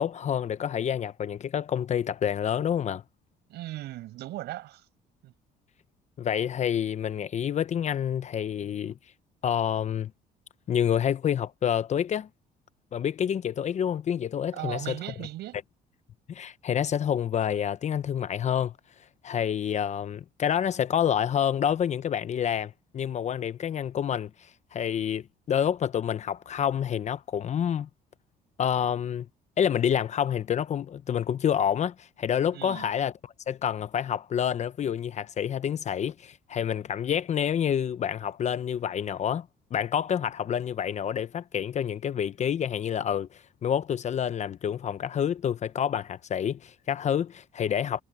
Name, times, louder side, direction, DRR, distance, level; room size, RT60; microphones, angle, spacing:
voice 1, 0.0-3.0 6.2-9.0 9.4-10.1 10.7-12.3 12.9-15.0 16.3-18.7 19.2-27.9 28.6-29.3 29.6-48.0, left 9 dB, 45° left, 0.7 m, -28 dB
voice 2, 3.5-4.8 5.2-5.3 14.5-15.6 32.5-32.9, right 16 dB, 80° right, 7.6 m, -37 dB
cardioid pair, 110°, 17 cm